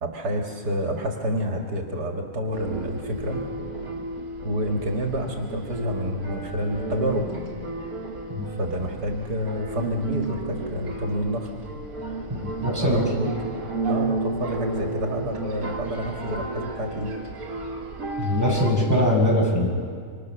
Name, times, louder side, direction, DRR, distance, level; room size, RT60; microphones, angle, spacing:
voice 1, 0.0-3.5 4.4-7.3 8.5-11.5 12.8-13.3 13.8-17.1, equal, 80° right, 1 dB, 2.7 m, -28 dB
sound 1, 2.5-18.7, right 2 dB, 65° right, 3.4 m, -33 dB
voice 2, 12.3-13.0 18.2-19.7, equal, 10° right, -2 dB, 6.6 m, -22 dB
27.5 x 25.5 x 6.4 m, 2.1 s
omnidirectional pair, 1.7 m